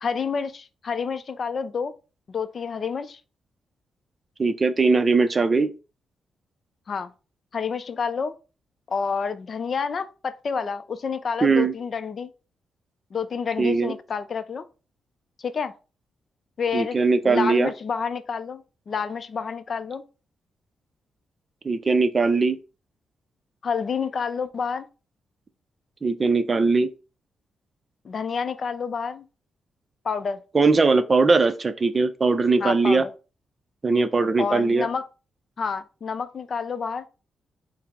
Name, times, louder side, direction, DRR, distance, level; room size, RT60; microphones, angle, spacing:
voice 1, 0.0-1.9 2.3-3.2 6.9-7.1 7.5-8.3 8.9-12.3 13.1-14.6 15.4-15.7 16.6-20.0 23.6-24.9 28.0-29.2 30.0-30.4 32.6-33.1 34.4-35.1 35.6-37.0, left 5 dB, 50° left, 0.4 m, -29 dB
voice 2, 4.4-5.7 11.4-11.7 13.6-13.9 16.7-17.7 21.6-22.6 26.0-26.9 30.5-33.0 33.8-34.9, right 4 dB, 35° right, 0.4 m, -20 dB
4.5 x 2.0 x 3.5 m
cardioid pair, 75°, 0 cm